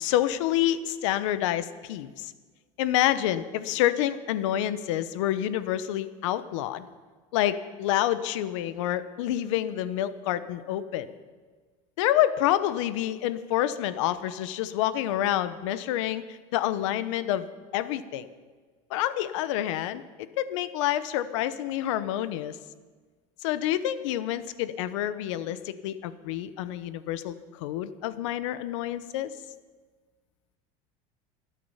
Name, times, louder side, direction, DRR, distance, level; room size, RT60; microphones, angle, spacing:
voice 1, 0.0-2.3 2.8-6.9 7.3-11.1 12.0-17.5 17.7-18.3 18.9-20.0 20.4-22.6 23.4-29.3, left 12 dB, 85° left, 14 dB, 0.9 m, -28 dB
24.0 x 8.5 x 5.6 m, 1.4 s
cardioid pair, 170°, 15 cm